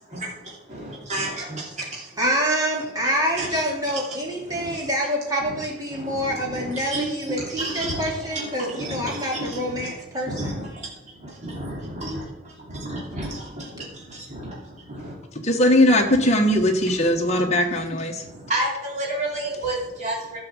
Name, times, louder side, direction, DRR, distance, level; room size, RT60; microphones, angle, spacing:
voice 1, 0.7-2.2 3.3-3.6 4.1-4.9 5.4-15.1 17.2-17.4 18.2-20.4, right 1 dB, 35° right, -4 dB, 3.1 m, -32 dB
voice 2, 2.2-10.5, equal, 20° right, -2 dB, 2.9 m, -26 dB
voice 3, 15.4-18.2, left 1 dB, 35° left, 2 dB, 1.6 m, -19 dB
12.0 x 6.3 x 7.3 m, 0.95 s
head